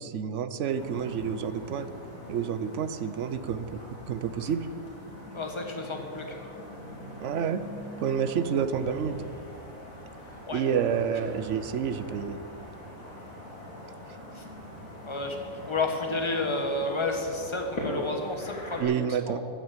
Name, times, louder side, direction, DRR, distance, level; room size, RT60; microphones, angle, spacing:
voice 1, 0.0-1.9 2.3-3.8 4.1-4.7 7.2-7.6 8.0-9.2 10.5-12.4 18.8-19.4, right 7 dB, 65° right, 12 dB, 1.0 m, -29 dB
sound 1, 0.7-18.8, equal, 75° left, 3.6 m, -42 dB
voice 2, 5.3-6.5 10.5-10.6 14.3-14.4 15.0-15.4 15.6-18.9 19.3-19.4, left 2 dB, 20° left, 3 dB, 1.5 m, -31 dB
14.5 x 7.3 x 8.8 m, 2.8 s
omnidirectional pair, 1.4 m